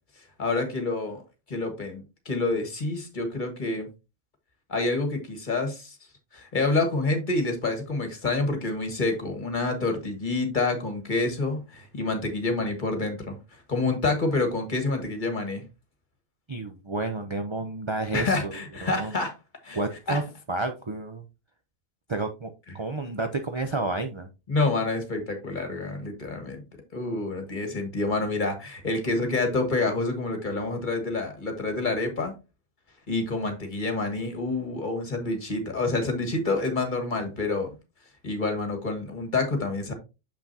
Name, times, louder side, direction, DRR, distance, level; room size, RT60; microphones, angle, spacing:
voice 1, 0.4-1.2 1.5-3.9 4.7-6.0 6.3-13.4 13.7-15.6 18.1-19.4 19.6-19.8 20.1-20.2 24.5-26.6 26.9-32.3 33.1-37.7 38.2-39.9, left 3 dB, 35° left, 1.5 m, -28 dB
voice 2, 16.5-18.5 18.8-19.2 19.7-20.2 20.5-21.2 22.1-22.5 22.7-24.3, right 3 dB, 45° right, 0.3 m, -30 dB
6.7 x 5.9 x 2.7 m
omnidirectional pair, 1.4 m